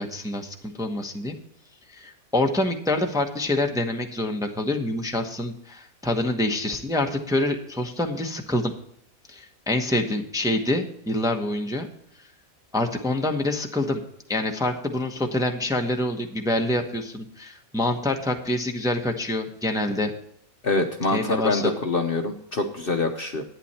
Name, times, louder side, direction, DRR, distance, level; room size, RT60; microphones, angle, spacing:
voice 1, 0.0-1.3 1.9-8.7 9.3-11.9 12.7-14.0 14.3-20.1 21.1-21.7, left 1 dB, 5° right, 3 dB, 0.9 m, -26 dB
voice 2, 20.6-23.4, left 3 dB, 45° left, 5 dB, 0.9 m, -25 dB
11.5 x 9.3 x 4.3 m, 0.71 s
omnidirectional pair, 1.5 m